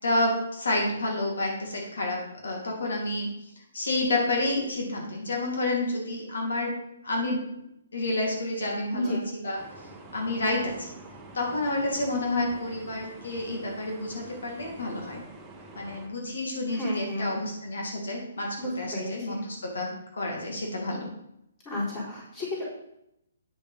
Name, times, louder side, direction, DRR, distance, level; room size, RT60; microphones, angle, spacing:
voice 1, 0.0-3.3 3.7-6.7 7.0-7.4 7.9-9.2 9.4-9.6 10.1-10.9 11.3-15.2 15.8-19.9 20.1-21.1, left 2 dB, 85° left, 0 dB, 2.4 m, -29 dB
sound 1, 9.6-16.1, right 2 dB, 5° right, 1.0 m, -47 dB
voice 2, 16.7-17.4 18.6-19.4 21.6-22.7, left 1 dB, 20° left, -7 dB, 3.9 m, -32 dB
8.9 x 6.6 x 4.0 m, 0.79 s
hypercardioid pair, 160°, 0 cm